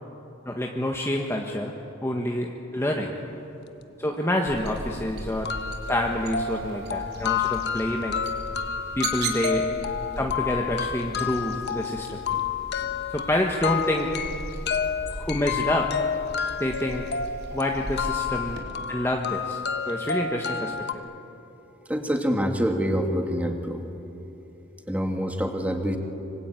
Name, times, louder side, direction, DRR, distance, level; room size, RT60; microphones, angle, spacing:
voice 1, 0.4-1.7 2.0-3.1 4.0-5.5 5.9-8.2 9.0-9.7 10.1-12.2 13.1-14.1 15.2-15.9 16.6-17.0 17.5-20.7, left 1 dB, 15° left, 0 dB, 1.6 m, -27 dB
sound 1, 4.5-18.6, right 2 dB, 55° right, 3.8 m, -38 dB
sound 2, 4.9-5.0 5.4-20.9, left 7 dB, 60° left, 1.2 m, -30 dB
voice 2, 21.9-23.8 24.9-26.0, equal, 10° right, 3 dB, 2.4 m, -26 dB
25.5 x 25.0 x 9.3 m, 3.0 s
head